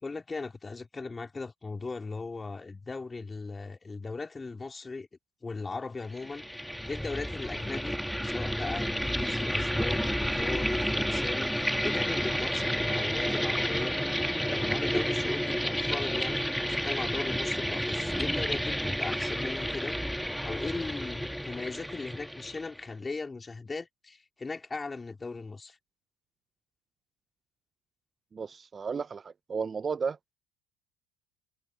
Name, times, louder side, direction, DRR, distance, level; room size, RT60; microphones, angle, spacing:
voice 1, 0.0-5.1 5.4-8.0 8.2-13.9 14.4-20.0 20.4-25.8, left 3 dB, 20° left, 3.4 m, -38 dB
sound 1, 6.1-22.8, equal, ahead, 1.9 m, -30 dB
voice 2, 28.3-30.2, right 5 dB, 30° right, 0.6 m, -33 dB
hypercardioid pair, 75°, 0 cm